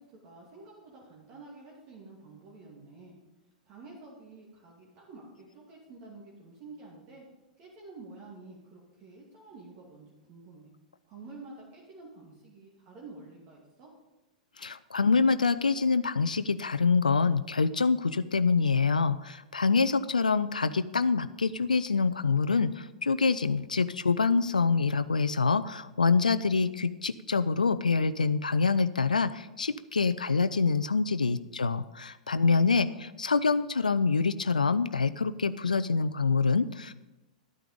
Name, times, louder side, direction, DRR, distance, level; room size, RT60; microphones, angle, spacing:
voice 1, 0.0-3.2 3.6-7.2 7.6-10.7 11.0-13.9 32.8-33.0, right 3 dB, 45° right, -3 dB, 2.5 m, -49 dB
voice 2, 14.6-36.9, left 4 dB, 85° left, 14 dB, 0.4 m, -26 dB
12.5 x 9.1 x 5.1 m, 1.1 s
figure-of-eight pair, 100°, 4 cm